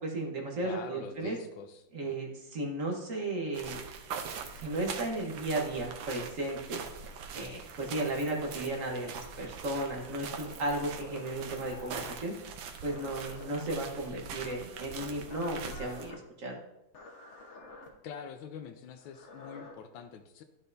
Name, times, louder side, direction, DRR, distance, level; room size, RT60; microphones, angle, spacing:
voice 1, 0.0-1.4 1.9-3.8 4.6-6.9 7.3-12.3 12.8-16.6, right 2 dB, 50° right, 0 dB, 1.3 m, -35 dB
voice 2, 0.6-2.1 18.0-20.4, left 7 dB, 80° left, 6 dB, 1.4 m, -45 dB
sound 1, 3.5-16.1, right 6 dB, 80° right, 1.5 m, -43 dB
sound 2, 10.4-12.1 12.8-13.7 14.3-14.8 15.2-16.2 16.9-17.9 19.0-19.7, left 2 dB, 45° left, 1.2 m, -49 dB
11.5 x 5.5 x 2.6 m, 0.88 s
omnidirectional pair, 2.1 m